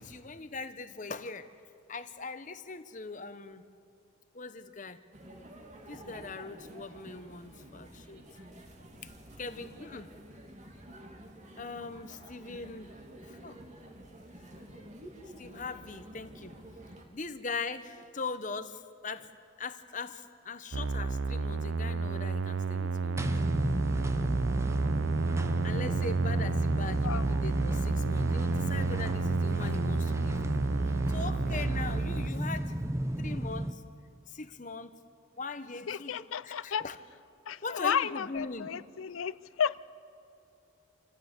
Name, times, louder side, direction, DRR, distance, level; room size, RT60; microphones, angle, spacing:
voice 1, 0.0-1.5 1.9-3.6 4.3-5.0 5.9-8.2 9.4-10.1 11.6-12.9 13.3-13.6 14.7-14.8 15.4-16.5 17.1-19.3 19.6-23.3 25.6-32.8 33.2-33.8 34.3-34.9 35.4-37.0 37.6-38.7, left 4 dB, 35° left, 11 dB, 1.0 m, -41 dB
sound 1, 5.1-17.0, right 1 dB, 35° right, 2.4 m, -50 dB
sound 2, 20.7-32.3, right 4 dB, 65° right, 0.5 m, -31 dB
sound 3, 23.2-33.7, equal, 15° right, 0.7 m, -33 dB
voice 2, 35.9-36.8 37.5-39.8, left 7 dB, 75° left, 18 dB, 0.5 m, -32 dB
28.0 x 15.0 x 8.2 m, 2.6 s
head